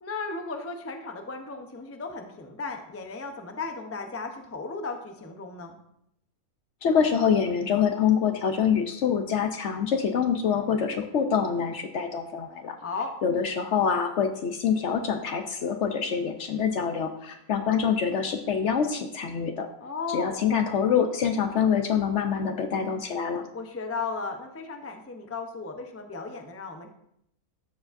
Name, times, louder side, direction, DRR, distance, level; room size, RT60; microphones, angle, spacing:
voice 1, 0.0-5.8 12.8-13.1 19.8-20.6 23.5-26.9, left 4 dB, 20° left, 4 dB, 0.4 m, -35 dB
voice 2, 6.8-12.8 13.2-19.7 20.1-23.5, left 7 dB, 60° left, 7 dB, 0.8 m, -25 dB
13.0 x 4.8 x 2.5 m, 0.74 s
omnidirectional pair, 1.6 m